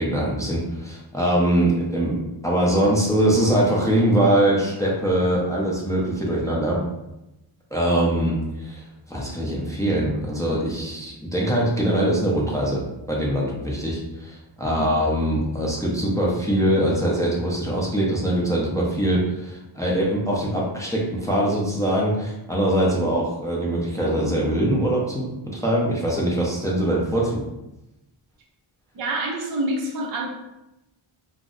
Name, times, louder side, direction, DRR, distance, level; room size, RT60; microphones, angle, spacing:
voice 1, 0.0-6.8 7.7-27.4, right 1 dB, 5° left, -4 dB, 0.4 m, -22 dB
voice 2, 28.9-30.3, right 1 dB, 45° right, -1 dB, 0.6 m, -27 dB
2.5 x 2.0 x 3.6 m, 0.92 s
wide cardioid pair, 140°, 50 cm